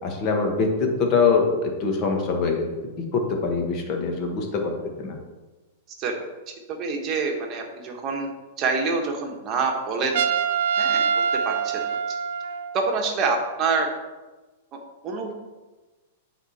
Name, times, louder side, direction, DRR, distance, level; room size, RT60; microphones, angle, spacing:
voice 1, 0.0-2.6 3.0-4.7 5.0-5.1, left 4 dB, 35° left, 2 dB, 1.4 m, -23 dB
voice 2, 6.5-8.3 8.6-10.2 10.8-11.8 12.1-12.2 12.7-13.9 14.7-15.3, right 4 dB, 30° right, 2 dB, 1.3 m, -26 dB
Trumpet, 10.1-12.8, right 6 dB, 70° right, 0.5 m, -24 dB
9.1 x 3.8 x 4.3 m, 1.2 s
hypercardioid pair, 140°, 0 cm